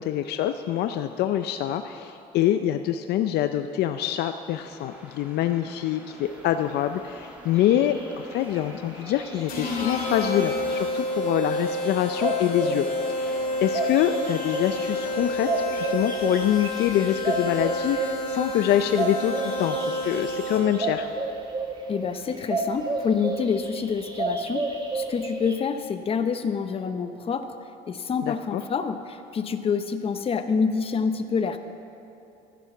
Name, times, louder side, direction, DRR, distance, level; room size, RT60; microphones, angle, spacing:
voice 1, 0.0-8.0 8.3-21.1 28.2-28.6, left 11 dB, 75° left, 8 dB, 0.5 m, -25 dB
sound 1, 4.5-16.8, equal, 10° right, 2.5 m, -46 dB
sound 2, 7.2-7.3 7.5-10.6 12.1-25.6, right 3 dB, 25° right, 1.4 m, -32 dB
sound 3, 9.5-20.9, left 1 dB, 60° left, 2.6 m, -30 dB
voice 2, 21.9-24.7 24.9-27.5 27.9-31.6, left 6 dB, 35° left, 8 dB, 0.7 m, -27 dB
12.5 x 10.0 x 5.9 m, 2.7 s
cardioid pair, 110°, 17 cm